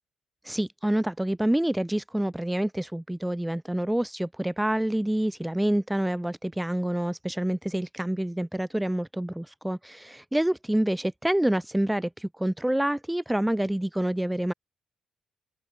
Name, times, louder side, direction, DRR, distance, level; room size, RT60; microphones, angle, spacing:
voice 1, 0.4-14.5, right 1 dB, 5° right, 0.5 m, -27 dB
open air
cardioid pair, 75°, 0 cm